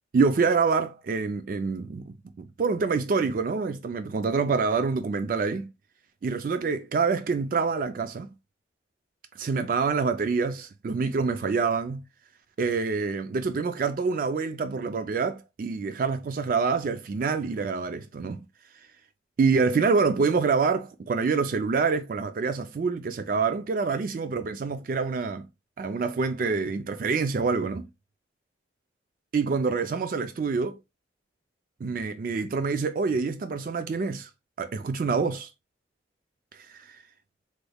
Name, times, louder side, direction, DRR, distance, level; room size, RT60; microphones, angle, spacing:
voice 1, 0.1-5.7 6.2-8.3 9.4-12.0 12.6-18.4 19.4-25.5 25.8-27.9 29.3-30.8 31.8-34.3 34.6-35.5 36.7-37.0, right 4 dB, 50° right, 0.3 m, -26 dB
3.3 x 3.1 x 2.2 m
head